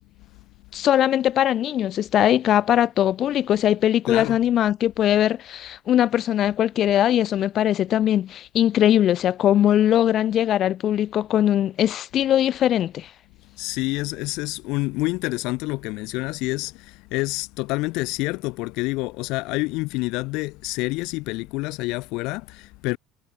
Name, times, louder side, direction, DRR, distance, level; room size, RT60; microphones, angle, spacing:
voice 1, 0.7-13.1, left 11 dB, 45° left, 3.7 m, -20 dB
voice 2, 4.1-4.4 13.6-23.0, left 23 dB, 70° left, 4.2 m, -28 dB
cardioid pair, 125°, 0 cm